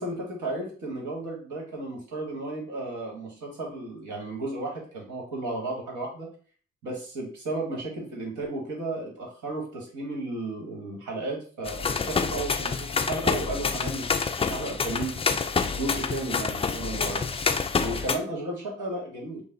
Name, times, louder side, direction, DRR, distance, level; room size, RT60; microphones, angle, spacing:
voice 1, 0.0-6.3 6.8-15.2 15.7-17.2 17.8-19.4, right 2 dB, 60° right, -1 dB, 1.5 m, -34 dB
sound 1, 11.7-18.2, left 5 dB, 15° left, 0.4 m, -27 dB
5.4 x 2.0 x 4.0 m, 0.42 s
figure-of-eight pair, 40°, 33 cm